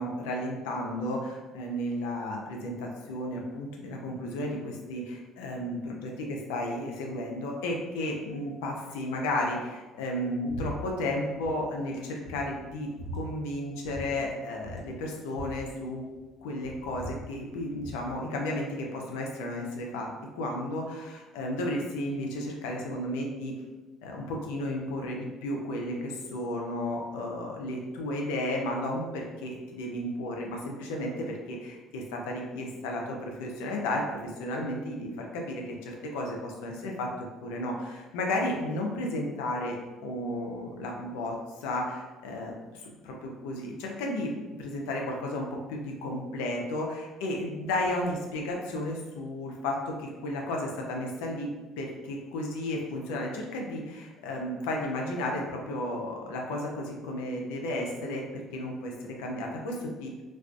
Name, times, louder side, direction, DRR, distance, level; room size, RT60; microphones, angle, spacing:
voice 1, 0.0-16.0 16.4-20.1 20.3-23.5 24.0-37.1 37.4-39.8 40.0-42.6 42.8-60.2, left 1 dB, 80° left, 0 dB, 0.4 m, -33 dB
sound 1, 10.5-10.7 11.0-11.5 11.9-12.0 12.3-13.2 13.8-14.1 14.3-14.4 14.6-16.3 16.6-18.0, right 1 dB, 45° right, 0.8 m, -41 dB
2.4 x 2.3 x 2.3 m, 1.2 s
hypercardioid pair, 65°, 0 cm